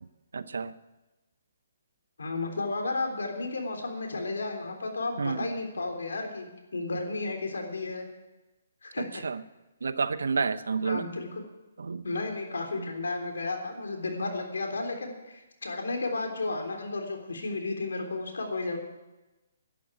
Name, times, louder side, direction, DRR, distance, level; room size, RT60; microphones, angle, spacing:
voice 1, 0.3-0.7 5.2-5.5 9.2-9.4 9.8-11.1 11.8-12.0 12.8-12.9, right 5 dB, 75° right, 15 dB, 0.8 m, -30 dB
voice 2, 2.2-8.1 8.8-9.2 10.8-11.4 12.0-18.8, left 3 dB, 80° left, 4 dB, 3.6 m, -33 dB
11.5 x 11.0 x 9.1 m, 1.0 s
hypercardioid pair, 145°, 0 cm